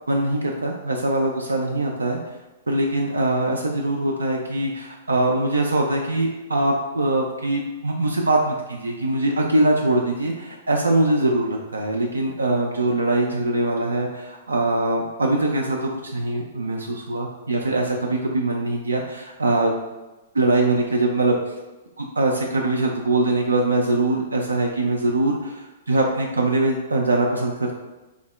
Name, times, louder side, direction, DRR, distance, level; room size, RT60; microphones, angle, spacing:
voice 1, 0.1-2.2 2.7-19.7 20.3-21.5 22.0-27.7, right 2 dB, 75° right, 0 dB, 0.3 m, -22 dB
3.7 x 2.0 x 3.3 m, 1.1 s
figure-of-eight pair, 110°, 0 cm